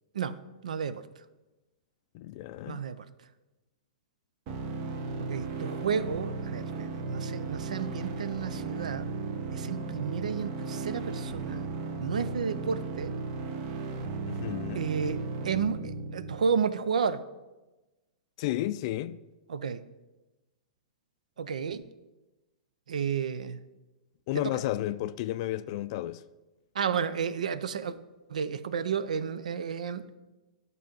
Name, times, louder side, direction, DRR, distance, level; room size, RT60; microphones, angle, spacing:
voice 1, 0.6-1.0 2.7-3.0 5.2-9.1 9.5-11.6 12.0-13.1 14.7-15.2 15.4-17.2 19.5-19.8 21.4-21.8 22.9-23.6 24.3-24.4 26.8-27.9 28.3-30.0, right 6 dB, 85° right, 0.5 m, -31 dB
voice 2, 2.1-2.8 14.3-14.9 18.4-19.2 24.3-26.2, left 14 dB, 50° left, 0.3 m, -32 dB
sound 1, 4.5-16.4, right 3 dB, 45° right, 0.9 m, -35 dB
11.5 x 4.1 x 5.2 m
hypercardioid pair, 125°, 4 cm